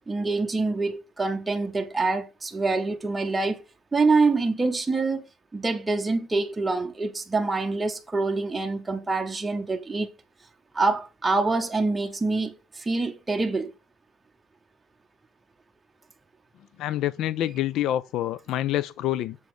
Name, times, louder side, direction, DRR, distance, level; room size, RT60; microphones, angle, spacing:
voice 1, 0.1-3.6 3.9-5.3 5.5-10.1 10.7-13.7, right 3 dB, 10° right, 0.7 m, -25 dB
voice 2, 16.8-19.4, left 13 dB, 60° left, 0.3 m, -27 dB
7.0 x 4.0 x 4.8 m
cardioid pair, 145°, 0 cm